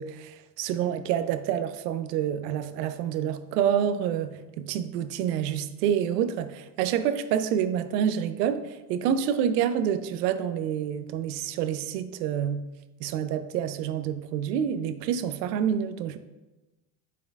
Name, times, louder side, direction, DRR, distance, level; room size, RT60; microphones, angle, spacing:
voice 1, 0.0-12.7 13.0-16.2, right 9 dB, 90° right, 11 dB, 0.5 m, -28 dB
11.0 x 4.2 x 2.3 m, 1.1 s
hypercardioid pair, 75°, 47 cm